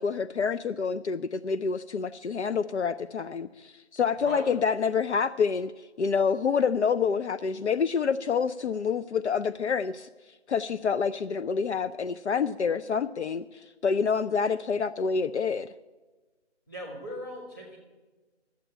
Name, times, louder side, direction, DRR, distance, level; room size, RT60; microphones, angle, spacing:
voice 1, 0.0-10.1 10.5-15.7, left 6 dB, 70° left, 12 dB, 0.5 m, -27 dB
voice 2, 4.2-4.5 16.7-17.8, equal, 20° left, -4 dB, 3.3 m, -38 dB
12.5 x 8.2 x 8.8 m, 1.3 s
figure-of-eight pair, 175°, 35 cm